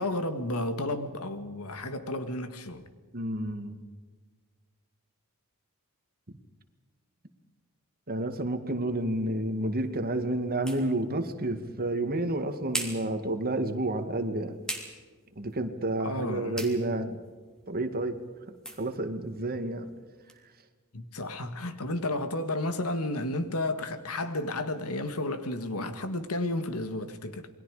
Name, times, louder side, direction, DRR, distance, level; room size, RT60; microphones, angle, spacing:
voice 1, 0.0-2.9 16.0-16.6 20.9-27.5, left 1 dB, 75° left, 1.9 m, -32 dB
voice 2, 3.1-3.8 8.1-14.5 15.4-17.2 17.7-18.2 18.8-19.9, right 1 dB, 45° right, 2.1 m, -30 dB
sound 1, 8.9-20.4, right 1 dB, 5° left, 3.3 m, -44 dB
28.0 x 22.0 x 5.0 m
head